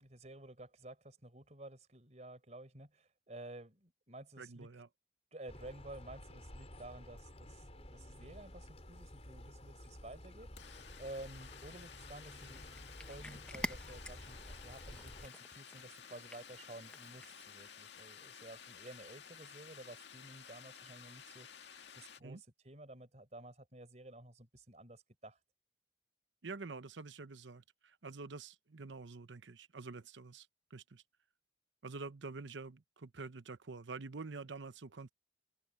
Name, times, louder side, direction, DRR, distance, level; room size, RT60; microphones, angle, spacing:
voice 1, 0.0-4.8 5.3-12.7 13.0-25.4, right 1 dB, 40° right, 4.2 m, -52 dB
voice 2, 4.4-4.9 22.2-22.4 26.4-31.0 31.8-35.1, right 4 dB, 85° right, 0.9 m, -47 dB
sound 1, 5.5-15.3, left 1 dB, 35° left, 6.2 m, -52 dB
sound 2, 8.5-8.6 8.8-22.2, left 7 dB, 70° left, 2.0 m, -55 dB
Cat, 12.3-17.5, left 1 dB, 5° left, 1.0 m, -49 dB
open air
head